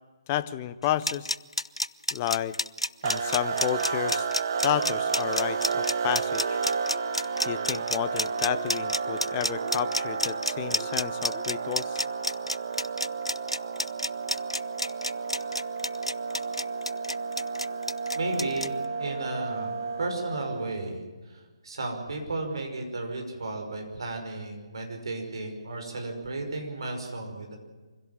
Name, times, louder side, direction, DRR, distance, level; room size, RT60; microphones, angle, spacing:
voice 1, 0.3-1.3 2.1-2.6 3.0-4.3 4.6-6.6 7.5-12.0, left 12 dB, 20° left, 15 dB, 0.7 m, -31 dB
sound 1, 0.8-18.7, left 1 dB, 85° left, 0.6 m, -30 dB
sound 2, 3.0-20.9, right 5 dB, 40° right, 1.5 m, -32 dB
sound 3, 6.3-6.6 6.9-7.1 7.4-7.6 7.9-8.1 8.5-8.7 9.0-9.2 9.6-9.8 10.2-10.3 10.7-10.9 11.3-11.5, left 2 dB, 5° left, 4.9 m, -46 dB
voice 2, 18.1-27.6, right 2 dB, 55° right, 3 dB, 5.5 m, -34 dB
25.0 x 16.5 x 7.4 m, 1.4 s
figure-of-eight pair, 140°, 3 cm